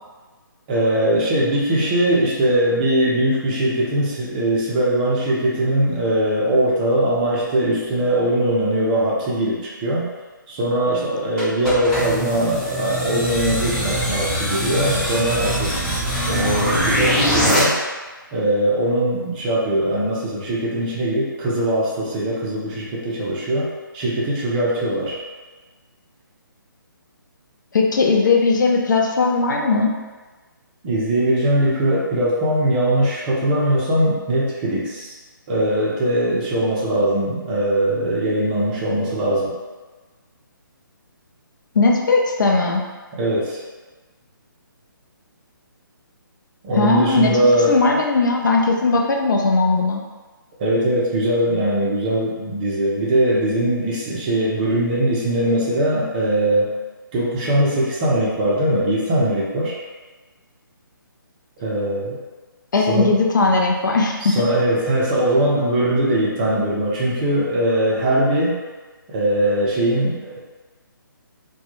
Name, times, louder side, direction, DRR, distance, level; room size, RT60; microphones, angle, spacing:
voice 1, 0.7-10.1 10.5-15.8 16.3-17.8 18.3-23.7 23.9-25.2 30.8-35.2 35.5-39.5 43.2-43.6 46.6-47.8 50.6-56.7 57.1-59.8 61.6-62.2 62.9-63.2 64.2-68.6 69.1-70.4, right 1 dB, 25° right, -5 dB, 0.5 m, -20 dB
sound 1, 11.4-17.6, equal, 10° left, 0.7 m, -22 dB
voice 2, 27.7-29.9 41.7-42.9 46.8-50.0 62.7-64.4, left 3 dB, 60° left, 1 dB, 0.4 m, -18 dB
2.1 x 2.1 x 3.0 m, 1.3 s
figure-of-eight pair, 140°, 12 cm